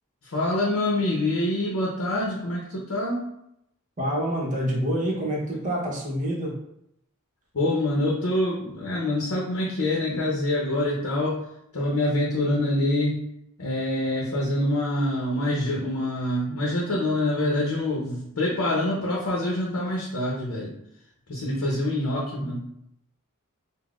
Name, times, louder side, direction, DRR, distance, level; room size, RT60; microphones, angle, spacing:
voice 1, 0.3-3.3 7.5-11.4 11.7-13.2 13.6-20.7 21.3-22.6, left 1 dB, 75° left, -4 dB, 0.6 m, -25 dB
voice 2, 4.0-6.5, equal, 35° right, -2 dB, 0.7 m, -27 dB
3.8 x 2.1 x 2.3 m, 0.78 s
head